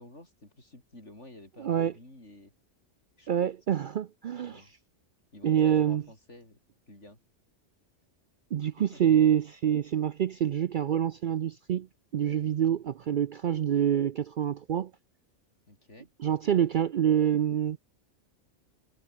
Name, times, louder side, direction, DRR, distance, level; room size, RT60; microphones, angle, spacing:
voice 1, 0.0-2.5 3.2-3.3 4.4-4.7 5.3-6.6 6.9-7.2 8.9-9.0 15.7-16.1, left 1 dB, 70° left, 7.6 m, -51 dB
voice 2, 1.6-1.9 3.3-4.7 5.4-6.0 8.5-11.9 12.1-14.9 16.2-17.8, right 9 dB, 55° right, 0.6 m, -26 dB
omnidirectional pair, 1.2 m